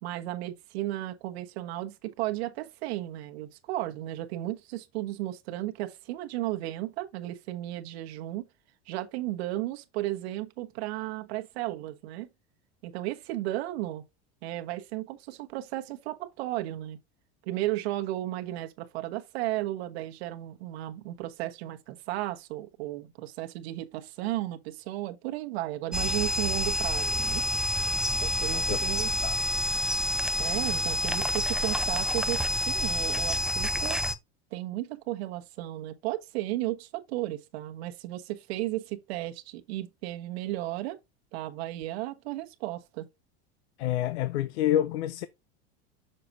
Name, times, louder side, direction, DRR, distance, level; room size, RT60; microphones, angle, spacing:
voice 1, 0.0-8.5 8.9-12.3 12.8-14.0 14.4-17.0 17.4-27.4 28.2-29.1 30.4-34.0 34.5-41.0 41.3-43.1, right 15 dB, 75° right, 1.3 m, -34 dB
sound 1, 25.9-34.1, left 1 dB, ahead, 0.3 m, -28 dB
voice 2, 43.8-45.3, left 12 dB, 85° left, 0.6 m, -28 dB
6.7 x 6.7 x 2.7 m
supercardioid pair, 125°, 32 cm